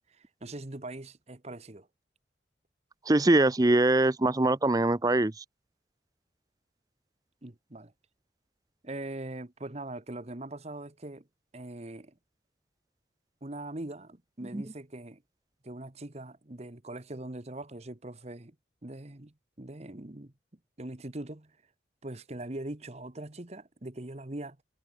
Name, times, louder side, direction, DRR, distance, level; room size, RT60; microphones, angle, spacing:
voice 1, 0.1-1.9 7.4-7.9 8.8-11.3 11.5-12.2 13.4-15.2 15.6-18.5 18.8-20.3 20.8-21.6 22.0-24.6, right 1 dB, 35° right, 1.2 m, -41 dB
voice 2, 3.1-5.3 14.5-14.6, right 2 dB, 20° right, 0.6 m, -23 dB
head